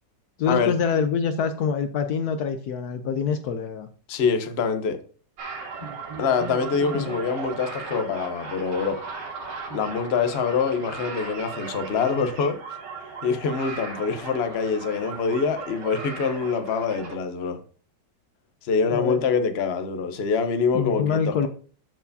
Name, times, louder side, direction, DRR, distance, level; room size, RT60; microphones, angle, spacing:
voice 1, 0.4-3.9 6.9-7.1 18.9-19.2 20.7-21.5, left 6 dB, 70° left, 1.1 m, -25 dB
voice 2, 4.1-5.0 6.2-9.0 9.7-12.8 13.2-17.6 18.6-21.5, left 5 dB, 45° left, 0.9 m, -25 dB
sound 1, 5.4-17.2, right 4 dB, 85° right, 2.1 m, -37 dB
13.5 x 4.6 x 2.7 m
omnidirectional pair, 1.9 m